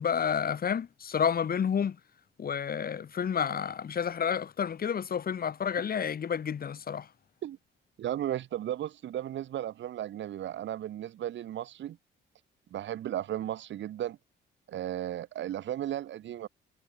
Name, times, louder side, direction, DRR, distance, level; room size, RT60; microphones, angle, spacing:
voice 1, 0.0-2.0 2.4-7.1, left 7 dB, 50° left, 2.4 m, -30 dB
voice 2, 8.0-12.0 12.7-14.2 14.7-16.5, right 11 dB, 65° right, 1.4 m, -35 dB
cardioid pair, 90°, 20 cm